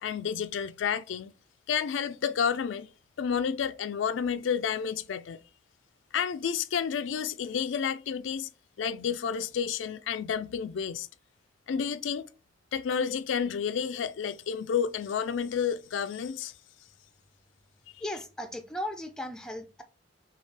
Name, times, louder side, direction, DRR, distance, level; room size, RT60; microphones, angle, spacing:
voice 1, 0.0-1.3 1.7-2.9 3.2-5.4 6.1-8.5 8.8-11.1 11.7-12.3 12.7-16.5, left 7 dB, 80° left, 0.4 m, -30 dB
voice 2, 18.0-19.8, left 1 dB, 5° left, 0.5 m, -36 dB
6.4 x 2.4 x 3.3 m
head